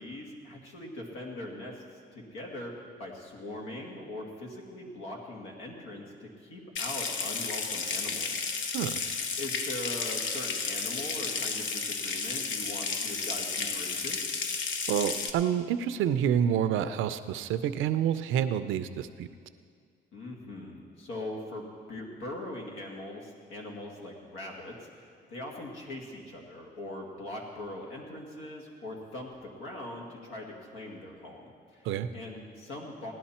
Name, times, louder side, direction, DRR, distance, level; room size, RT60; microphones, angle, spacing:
voice 1, 0.0-2.7 3.0-8.4 9.4-14.2 20.1-31.9 32.1-33.1, left 1 dB, 90° left, -1 dB, 2.3 m, -41 dB
Water tap faucet / Sink (filling or washing) / Trickle dribble, 6.8-15.3, left 5 dB, 75° left, 1.0 m, -32 dB
voice 2, 14.9-19.3 31.8-32.1, right 9 dB, 90° right, 11 dB, 0.6 m, -28 dB
17.0 x 11.0 x 4.3 m, 2.1 s
cardioid pair, 90°, 20 cm